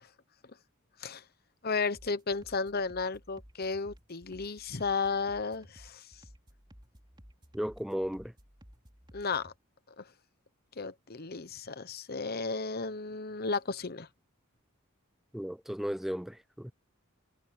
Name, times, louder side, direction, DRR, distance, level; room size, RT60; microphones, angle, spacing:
voice 1, 1.6-6.0 9.1-9.5 10.0-10.1 10.8-14.1, left 4 dB, 45° left, 1.0 m, -33 dB
sound 1, 1.9-9.6, equal, 20° right, 3.4 m, -56 dB
voice 2, 7.5-8.3 15.3-16.7, equal, ahead, 0.3 m, -35 dB
head